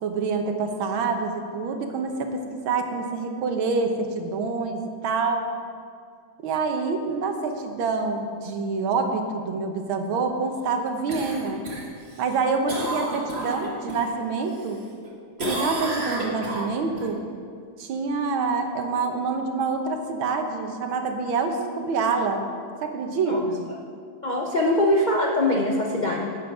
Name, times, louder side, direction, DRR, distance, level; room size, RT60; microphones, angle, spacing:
voice 1, 0.0-5.5 6.4-11.6 12.2-14.8 15.5-17.3 17.8-22.5 22.8-23.7, right 4 dB, 90° right, 5 dB, 1.8 m, -26 dB
Cough, 11.1-14.1 14.5-15.1 15.4-17.1 21.5-21.6, right 1 dB, 35° right, 1.7 m, -31 dB
voice 2, 24.2-26.3, left 1 dB, 60° left, -1 dB, 0.4 m, -22 dB
11.5 x 8.6 x 4.9 m, 2.3 s
omnidirectional pair, 2.2 m